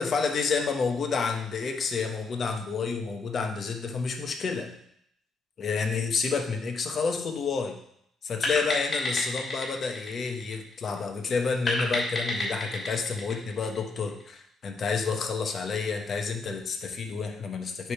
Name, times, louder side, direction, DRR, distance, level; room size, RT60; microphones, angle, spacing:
voice 1, 0.0-4.7 5.6-7.8 8.2-17.9, left 5 dB, 45° left, 4 dB, 1.1 m, -29 dB
sound 1, 8.4-11.0 11.7-14.2, left 1 dB, 30° left, 2.9 m, -31 dB
9.1 x 3.5 x 5.7 m, 0.72 s
cardioid pair, 100°, 0 cm